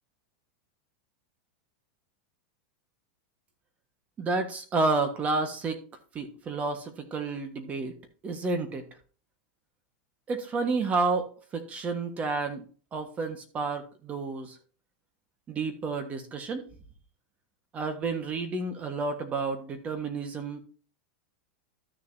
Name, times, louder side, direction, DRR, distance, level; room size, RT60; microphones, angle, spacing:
voice 1, 4.2-5.8 6.1-7.9 8.2-8.8 10.3-11.3 11.5-12.6 12.9-14.6 15.5-16.6 17.7-20.6, right 3 dB, 25° right, 7 dB, 1.4 m, -30 dB
13.0 x 6.7 x 2.7 m, 0.40 s
supercardioid pair, 145°, 6 cm